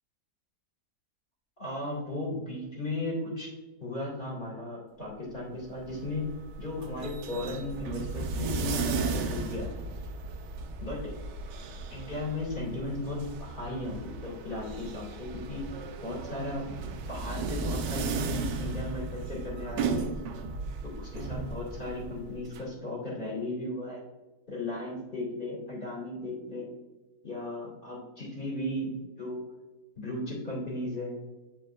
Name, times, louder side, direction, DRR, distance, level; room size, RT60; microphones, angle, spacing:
voice 1, 1.6-3.5 3.8-6.3 6.6-9.7 10.8-11.1 11.9-15.6 16.0-16.6 17.1-20.1 20.8-24.0 24.5-26.7 27.2-28.9 29.2-29.5 30.0-31.1, left 2 dB, 30° left, -5 dB, 2.2 m, -36 dB
sound 1, 5.6-22.6, right 4 dB, 85° right, 1.3 m, -35 dB
8.3 x 4.7 x 2.5 m, 1.2 s
omnidirectional pair, 1.8 m